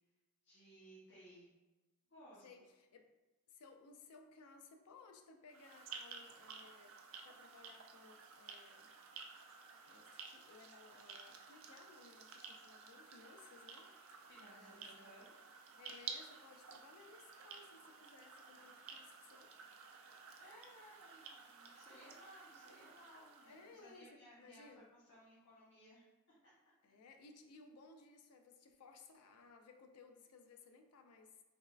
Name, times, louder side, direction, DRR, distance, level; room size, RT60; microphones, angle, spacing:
voice 1, 0.4-1.5 2.1-2.6 14.3-15.3 20.4-24.7 24.9-26.1, equal, 55° left, -10 dB, 0.9 m, -60 dB
voice 2, 2.4-3.1 3.5-8.9 9.8-13.9 14.4-15.3 15.8-19.5 23.4-24.9 26.8-31.4, left 4 dB, 85° left, 5 dB, 0.4 m, -61 dB
sound 1, 5.5-24.0, right 5 dB, 60° right, 0.4 m, -54 dB
sound 2, 9.3-9.6 10.6-11.3 12.2-12.7 13.3-13.4 13.7-13.8, left 1 dB, 15° left, 1.0 m, -75 dB
3.4 x 3.0 x 2.4 m, 1.1 s
head